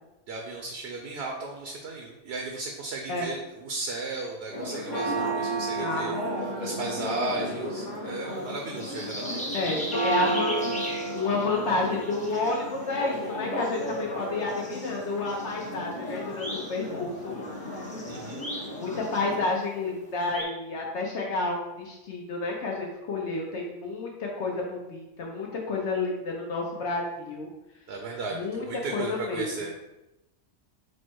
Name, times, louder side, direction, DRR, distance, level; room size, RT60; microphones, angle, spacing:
voice 1, 0.3-6.1 6.6-9.4 18.1-18.5 27.9-29.7, right 3 dB, 65° right, 1 dB, 0.8 m, -35 dB
Church bell, 4.5-19.5, right 1 dB, 40° left, 0.9 m, -33 dB
voice 2, 5.8-6.4 9.5-10.5 10.8-17.3 18.8-27.5 28.3-28.6 28.9-29.7, left 3 dB, 70° left, -1 dB, 1.0 m, -30 dB
sound 1, 8.3-20.4, equal, 10° left, 0.5 m, -40 dB
4.3 x 2.1 x 4.5 m, 0.94 s
omnidirectional pair, 1.2 m